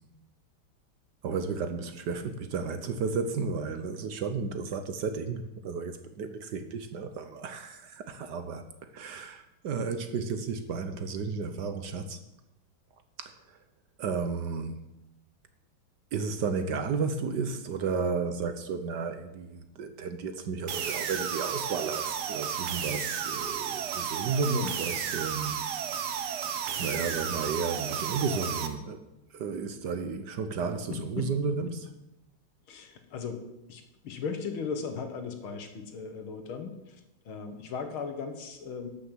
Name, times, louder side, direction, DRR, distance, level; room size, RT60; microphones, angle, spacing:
voice 1, 1.2-8.6 8.9-12.2 13.2-13.3 14.0-14.8 16.1-25.6 26.8-29.0 29.3-31.9, right 5 dB, 60° right, 9 dB, 1.3 m, -33 dB
sound 1, 20.7-28.7, right 8 dB, 80° right, 1.9 m, -33 dB
voice 2, 24.4-24.7 30.9-31.7 32.7-33.4 33.7-36.7 37.3-38.9, left 5 dB, 80° left, 7 dB, 2.2 m, -37 dB
12.5 x 6.5 x 7.4 m, 0.92 s
omnidirectional pair, 2.3 m